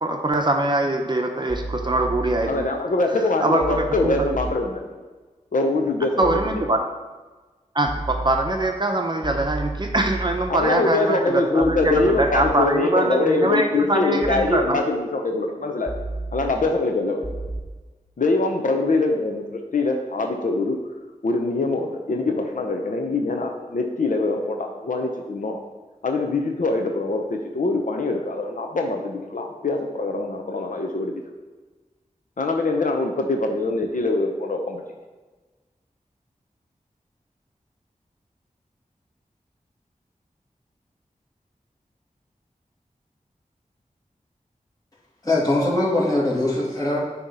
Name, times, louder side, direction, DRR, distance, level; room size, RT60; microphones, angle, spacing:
voice 1, 0.0-2.7 3.1-4.2 6.2-6.8 7.7-14.8, right 2 dB, 35° right, 3 dB, 0.7 m, -23 dB
sound 1, 1.5-2.5 3.6-4.5 6.2-6.5 7.9-8.5 9.2-10.5 11.6-12.5 14.2-14.5 15.9-16.5 17.2-17.6, right 2 dB, 5° left, 0.8 m, -31 dB
voice 2, 2.5-5.0 5.5-6.6 10.5-15.9 16.3-17.3 18.2-20.8 21.2-25.6 26.0-31.2 32.4-34.8, left 2 dB, 75° left, 2 dB, 0.7 m, -23 dB
voice 3, 45.2-47.0, left 1 dB, 25° left, -6 dB, 2.1 m, -21 dB
8.7 x 3.0 x 5.4 m, 1.3 s
wide cardioid pair, 75°, 14 cm